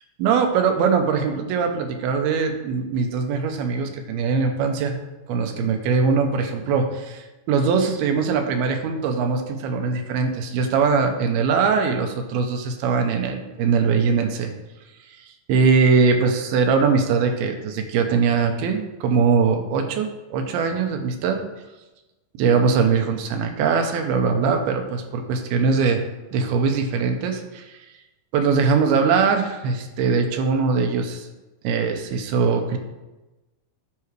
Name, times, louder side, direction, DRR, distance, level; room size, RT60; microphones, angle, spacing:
voice 1, 0.2-5.0 5.3-14.5 15.1-21.4 22.3-26.0 26.3-27.9 28.3-31.3 31.6-32.8, right 5 dB, 80° right, 4 dB, 2.7 m, -21 dB
13.0 x 4.7 x 3.3 m, 1.1 s
omnidirectional pair, 4.5 m